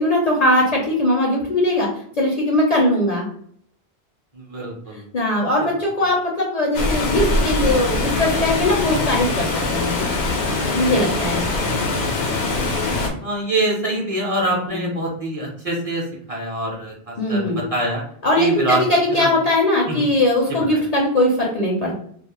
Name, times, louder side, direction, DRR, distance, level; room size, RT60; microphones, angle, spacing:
voice 1, 0.0-3.3 4.9-10.0 10.7-11.5 14.7-15.0 17.2-17.6 18.2-22.0, left 1 dB, 50° left, -2 dB, 0.5 m, -20 dB
voice 2, 4.3-5.1 11.4-11.9 12.4-12.6 13.2-18.0 18.4-18.8 19.1-19.3 19.9-20.1 20.7-20.8, right 2 dB, 40° right, -2 dB, 0.6 m, -25 dB
Water, 6.7-13.1, left 2 dB, 85° left, 0.9 m, -22 dB
2.3 x 2.0 x 2.9 m, 0.63 s
omnidirectional pair, 1.1 m